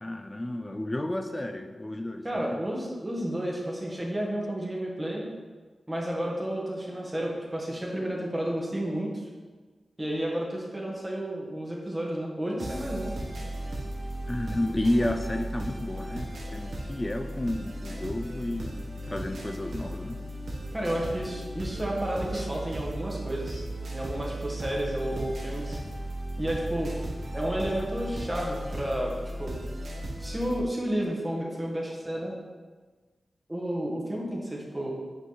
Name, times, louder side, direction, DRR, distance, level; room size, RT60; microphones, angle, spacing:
voice 1, 0.0-2.3 14.3-20.2 22.3-22.5, left 1 dB, 20° left, 7 dB, 0.6 m, -31 dB
voice 2, 2.2-5.3 5.9-9.3 10.0-13.1 19.9-20.2 20.7-23.6 23.9-25.8 26.4-26.9 27.3-29.5 30.2-32.3 33.5-34.9, right 1 dB, 20° right, -3 dB, 1.8 m, -31 dB
sound 1, 12.6-30.6, right 1 dB, 70° right, 1.4 m, -36 dB
8.2 x 5.4 x 4.1 m, 1.4 s
wide cardioid pair, 75°, 0 cm